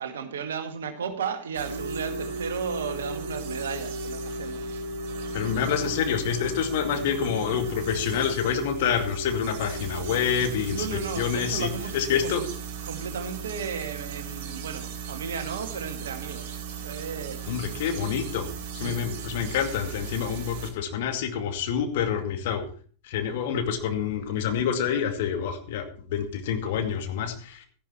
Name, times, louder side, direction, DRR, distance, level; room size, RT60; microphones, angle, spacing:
voice 1, 0.0-4.8 10.7-11.9 12.2-12.4 12.8-17.6 18.8-19.0, right 6 dB, 65° right, 7 dB, 2.0 m, -34 dB
sound 1, 1.5-20.7, right 8 dB, 50° right, 3.4 m, -38 dB
sound 2, 1.6-12.3, left 2 dB, 90° right, 0.7 m, -36 dB
voice 2, 5.3-10.9 11.2-12.4 17.5-18.5 18.7-22.6 23.0-27.7, left 8 dB, 55° left, 6 dB, 2.3 m, -27 dB
13.5 x 11.0 x 4.4 m, 0.41 s
figure-of-eight pair, 90°, 0 cm